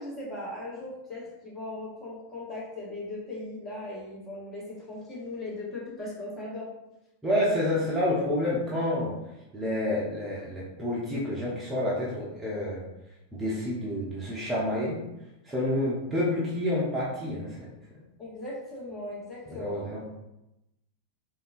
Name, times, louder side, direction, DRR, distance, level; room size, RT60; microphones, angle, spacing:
voice 1, 0.0-6.7 18.2-19.9, left 2 dB, 20° left, -6 dB, 1.1 m, -38 dB
voice 2, 7.2-9.1 9.5-12.8 13.3-15.0 15.4-17.7 19.5-20.0, left 1 dB, 10° right, -7 dB, 0.7 m, -29 dB
3.6 x 2.3 x 2.6 m, 0.91 s
figure-of-eight pair, 90°, 0 cm